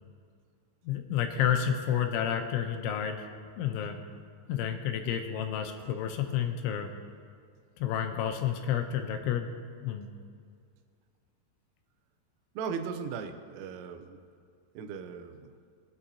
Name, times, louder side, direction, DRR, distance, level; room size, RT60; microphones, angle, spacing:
voice 1, 0.8-3.2 3.6-4.0 4.5-6.9 7.8-9.5 9.8-10.1, left 9 dB, 85° left, 5 dB, 3.1 m, -30 dB
voice 2, 12.6-14.2 14.7-15.5, right 6 dB, 90° right, 7 dB, 3.3 m, -37 dB
20.5 x 8.2 x 2.8 m, 2.2 s
omnidirectional pair, 5.5 m